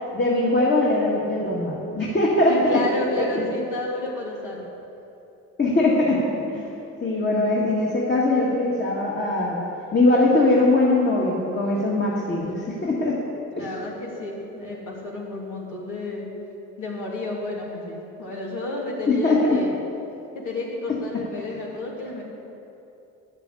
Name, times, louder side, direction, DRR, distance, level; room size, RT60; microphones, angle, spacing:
voice 1, 0.1-2.8 3.2-3.4 5.6-6.2 6.5-6.7 7.0-9.6 9.9-13.2 13.6-13.7 19.1-19.6, left 2 dB, 35° left, -4 dB, 2.1 m, -21 dB
voice 2, 2.5-4.7 13.6-16.3 16.8-19.8 20.3-22.2, left 2 dB, 80° left, -3 dB, 3.1 m, -31 dB
11.0 x 7.5 x 8.4 m, 2.9 s
cardioid pair, 90°, 30 cm